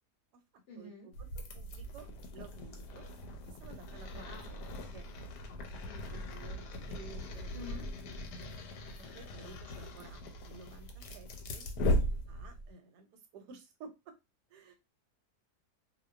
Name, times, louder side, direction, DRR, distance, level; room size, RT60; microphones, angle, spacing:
voice 1, 0.7-1.1 4.1-4.5 5.7-6.0 7.5-7.9 14.6-14.7, left 3 dB, 60° left, 0 dB, 0.8 m, -49 dB
sound 1, 1.1-12.7, equal, 85° left, 1.2 m, -38 dB
voice 2, 1.2-3.1 3.5-4.6 4.9-5.2 5.8-7.5 9.0-11.7 12.3-14.1 14.5-14.7, right 4 dB, 85° right, 7 dB, 1.2 m, -53 dB
2.6 x 2.2 x 2.3 m, 0.24 s
omnidirectional pair, 1.7 m